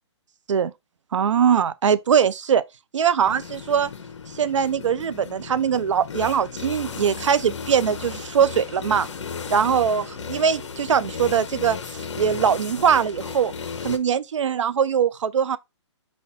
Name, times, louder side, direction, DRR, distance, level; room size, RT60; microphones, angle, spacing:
voice 1, 1.1-2.6 2.9-3.9 4.4-9.1 9.5-13.5 13.8-15.6, right 7 dB, 85° right, 0.4 m, -21 dB
sound 1, 3.2-14.0, left 6 dB, 70° left, 0.8 m, -35 dB
4.2 x 2.3 x 4.0 m
hypercardioid pair, 150°, 16 cm